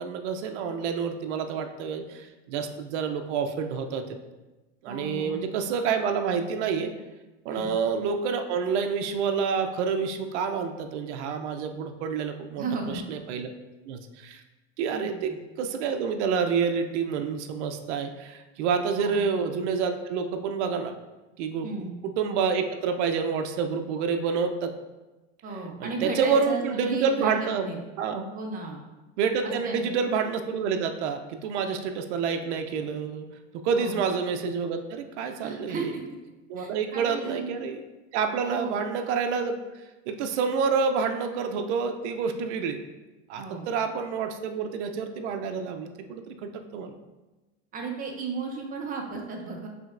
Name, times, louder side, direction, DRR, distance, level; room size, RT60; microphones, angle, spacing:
voice 1, 0.0-4.1 4.8-6.9 7.4-13.5 13.9-14.4 14.8-15.3 15.6-20.9 21.4-21.7 22.0-24.7 25.8-27.7 28.0-28.3 29.2-33.3 33.6-35.9 36.5-37.8 38.1-39.6 40.1-42.8 43.3-47.0, right 6 dB, 80° right, 6 dB, 0.5 m, -28 dB
voice 2, 4.9-5.4 7.5-7.7 12.6-13.0 14.9-15.4 18.9-19.2 21.6-21.9 25.4-27.3 27.6-27.8 28.3-28.8 29.4-29.8 33.7-34.0 35.4-36.0 36.6-37.6 38.4-38.8 43.4-43.7 47.7-49.7, right 4 dB, 25° right, 1 dB, 0.6 m, -34 dB
5.0 x 3.3 x 2.5 m, 1.1 s
supercardioid pair, 135°, 35 cm